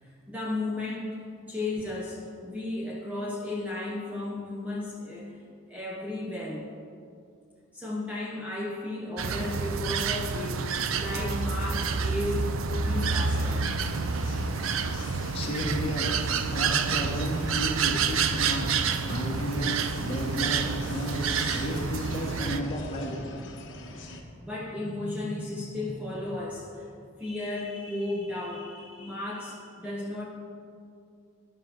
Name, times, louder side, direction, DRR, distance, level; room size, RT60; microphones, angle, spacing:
voice 1, 0.0-1.2 1.5-5.4 5.7-6.7 7.7-13.7 23.4-26.9 27.2-30.3, left 2 dB, 5° right, -3 dB, 0.7 m, -34 dB
sound 1, 9.2-22.6, right 5 dB, 75° right, 0.5 m, -28 dB
sound 2, 12.8-24.2, left 2 dB, 60° left, 1.1 m, -43 dB
voice 2, 15.3-16.1 16.5-21.2 21.5-23.2, equal, 30° left, -2 dB, 1.7 m, -32 dB
10.5 x 6.0 x 6.6 m, 2.4 s
head